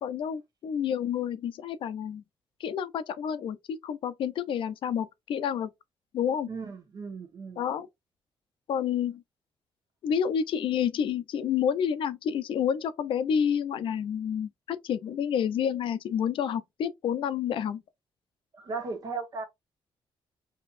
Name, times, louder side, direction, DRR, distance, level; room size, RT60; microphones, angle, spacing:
voice 1, 0.0-2.2 2.6-5.7 6.1-6.5 7.6-7.9 8.7-9.2 10.0-17.8, left 8 dB, 65° left, 0.5 m, -29 dB
voice 2, 6.5-7.6 18.5-19.4, right 4 dB, 45° right, 1.2 m, -36 dB
5.3 x 2.9 x 2.5 m
wide cardioid pair, 170°, 9 cm